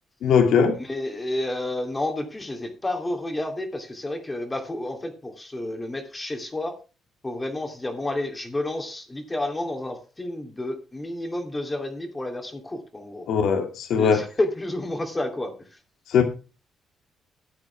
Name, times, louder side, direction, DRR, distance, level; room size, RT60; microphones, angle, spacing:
voice 1, 0.2-0.8 13.3-14.2 16.1-16.2, left 6 dB, 75° left, 5 dB, 2.2 m, -20 dB
voice 2, 0.8-6.8 7.2-13.2 14.0-15.5, left 1 dB, 20° left, 4 dB, 2.6 m, -30 dB
13.0 x 8.7 x 3.4 m, 0.33 s
cardioid pair, 90°, 0 cm